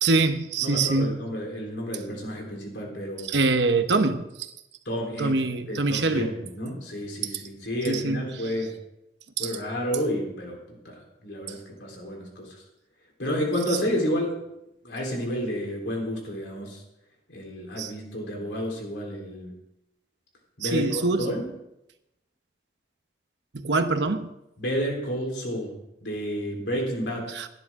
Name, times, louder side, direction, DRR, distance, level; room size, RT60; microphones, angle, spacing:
voice 1, 0.0-1.3 3.2-4.5 5.2-6.3 7.2-7.4 7.8-8.5 9.4-9.6 13.7-13.8 17.8-17.9 20.6-21.3 23.5-24.3 27.3-27.5, right 3 dB, 85° right, 8 dB, 1.0 m, -25 dB
voice 2, 0.6-3.3 4.9-5.4 5.7-8.7 9.4-10.6 10.8-12.6 13.2-14.4 14.8-16.8 17.3-19.5 20.6-21.5 24.6-25.7 26.0-27.3, equal, 85° left, 0 dB, 3.8 m, -30 dB
17.5 x 10.5 x 3.7 m, 0.87 s
head